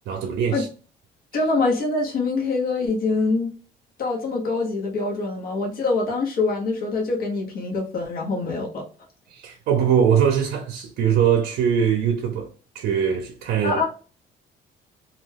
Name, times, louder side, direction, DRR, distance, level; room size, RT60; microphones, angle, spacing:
voice 1, 0.1-0.7 9.3-13.8, right 8 dB, 70° right, 0.5 m, -22 dB
voice 2, 1.3-3.5 4.0-8.8 13.6-13.8, left 3 dB, 60° left, 0.9 m, -24 dB
2.3 x 2.2 x 3.2 m
cardioid pair, 110°, 17 cm